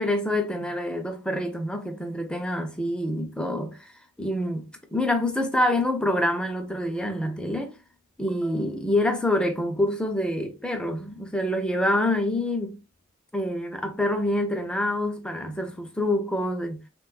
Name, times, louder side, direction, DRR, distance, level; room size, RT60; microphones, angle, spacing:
voice 1, 0.0-3.9 4.2-7.7 8.2-12.8 13.3-16.8, left 1 dB, 5° left, 0.4 m, -26 dB
3.2 x 2.2 x 2.3 m
head